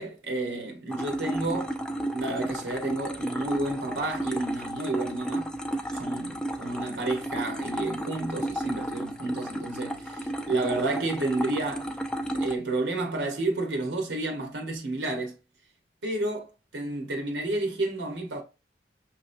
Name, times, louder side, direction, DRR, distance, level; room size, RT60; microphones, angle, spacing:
voice 1, 0.0-1.7 2.1-5.5 5.9-11.9 12.3-15.4 16.0-18.4, right 2 dB, 80° right, 1.3 m, -31 dB
sound 1, 0.9-12.6, right 1 dB, 5° left, 0.5 m, -33 dB
6.0 x 3.1 x 2.6 m
head